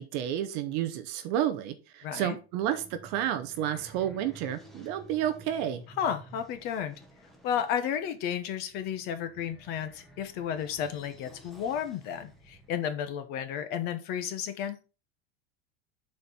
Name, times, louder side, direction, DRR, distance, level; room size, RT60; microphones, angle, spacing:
voice 1, 0.0-5.8, right 11 dB, 35° right, 0.7 m, -31 dB
voice 2, 2.0-2.4 6.0-6.9 7.4-14.8, left 9 dB, 30° left, 0.9 m, -32 dB
sound 1, 2.3-12.8, right 2 dB, ahead, 0.9 m, -53 dB
7.5 x 4.4 x 5.4 m
supercardioid pair, 175°, 32 cm